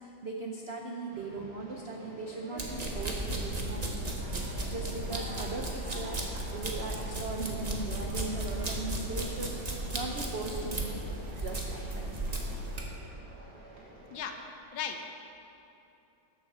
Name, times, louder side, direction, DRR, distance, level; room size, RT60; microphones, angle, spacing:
voice 1, 0.0-4.1 4.4-11.1 11.4-12.1, right 2 dB, 75° right, 1 dB, 0.5 m, -39 dB
Conversation, 1.1-14.2, right 1 dB, 45° right, 2.2 m, -48 dB
sound 1, 2.6-12.8, right 1 dB, 30° right, 0.8 m, -35 dB
voice 2, 14.1-14.4 14.7-15.1, left 7 dB, 75° left, 5 dB, 1.6 m, -37 dB
10.5 x 7.4 x 6.8 m, 2.9 s
omnidirectional pair, 2.2 m